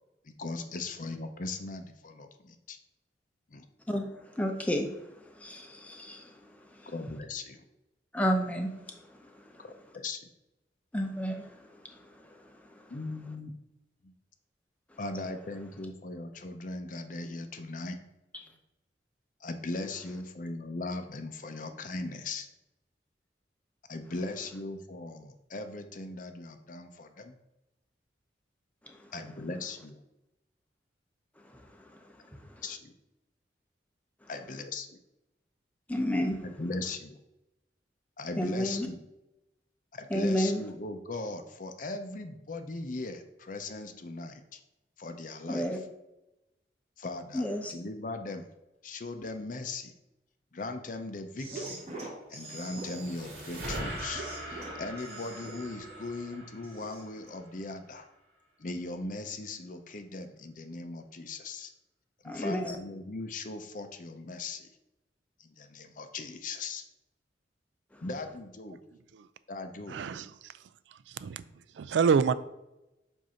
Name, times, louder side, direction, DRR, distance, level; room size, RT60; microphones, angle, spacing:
voice 1, 0.2-2.8 3.5-3.6 6.9-7.6 9.6-10.2 12.9-13.5 14.0-14.1 15.0-18.0 19.4-22.5 23.9-27.4 29.1-30.0 32.6-32.9 34.3-34.9 36.4-37.2 38.2-39.0 39.9-44.6 45.0-45.8 47.0-48.5 48.8-49.9 50.5-51.8 52.3-58.1 58.6-61.7 62.2-64.7 65.4-66.8 68.0-68.8 69.5-70.0, left 2 dB, 45° left, 0.6 m, -39 dB
voice 2, 4.4-4.9 5.4-6.3 8.1-8.7 10.9-11.4 35.9-36.4 38.4-38.9 40.1-40.6 45.5-45.8 47.3-47.7 62.2-62.7, equal, 10° left, 0.7 m, -30 dB
sound 1, 51.4-57.4, right 2 dB, 35° right, 1.5 m, -44 dB
sound 2, 52.4-57.8, right 1 dB, 55° right, 2.2 m, -42 dB
voice 3, 69.9-72.3, right 6 dB, 90° right, 0.3 m, -29 dB
7.6 x 2.7 x 5.6 m
head